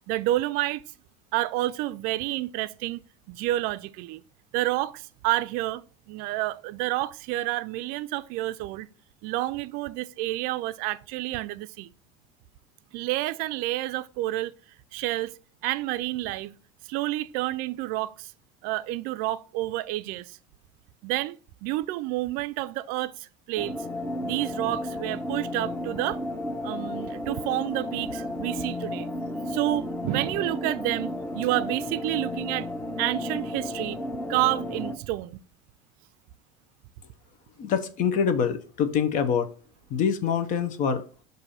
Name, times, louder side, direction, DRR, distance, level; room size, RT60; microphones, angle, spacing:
voice 1, 0.1-0.8 1.3-3.0 3.3-4.2 4.5-8.9 9.2-11.9 12.9-14.5 14.9-15.3 15.6-16.5 16.9-18.3 18.6-20.4 21.0-21.4 21.6-23.1 23.5-23.7 24.2-26.2 26.6-29.1 29.5-32.7 33.0-34.0 34.3-35.4, right 16 dB, 65° right, 0.4 m, -29 dB
sound 1, 23.6-34.9, left 1 dB, 10° left, 0.8 m, -33 dB
voice 2, 37.6-39.5 39.9-41.0, left 7 dB, 50° left, 0.8 m, -25 dB
6.5 x 2.7 x 5.6 m
supercardioid pair, 115°, 16 cm